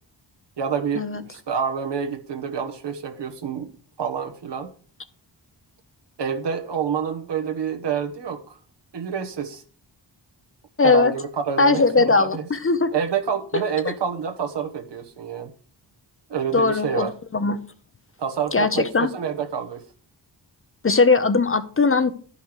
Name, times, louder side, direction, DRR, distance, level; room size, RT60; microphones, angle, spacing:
voice 1, 0.6-3.7 4.0-4.7 6.2-8.6 8.9-9.6 10.8-12.5 12.9-15.5 16.3-17.1 18.2-19.8, right 7 dB, 70° right, 6 dB, 1.3 m, -28 dB
voice 2, 10.8-11.1 11.6-12.9 13.8-13.9 16.5-17.6 18.5-19.1 20.8-22.1, left 4 dB, 30° left, 11 dB, 0.6 m, -19 dB
11.5 x 5.8 x 4.7 m, 0.42 s
wide cardioid pair, 105°, 44 cm